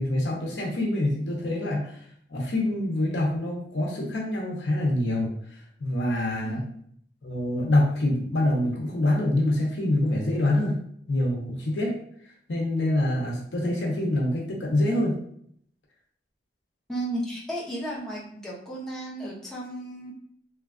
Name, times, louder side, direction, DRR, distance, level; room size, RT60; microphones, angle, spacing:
voice 1, 0.0-2.0 2.3-5.3 5.8-6.6 7.2-10.8 11.1-12.0 12.5-15.2, left 1 dB, 80° left, -2 dB, 0.7 m, -25 dB
voice 2, 16.9-20.1, right 1 dB, 5° left, -6 dB, 0.7 m, -34 dB
3.2 x 2.3 x 2.3 m, 0.66 s
head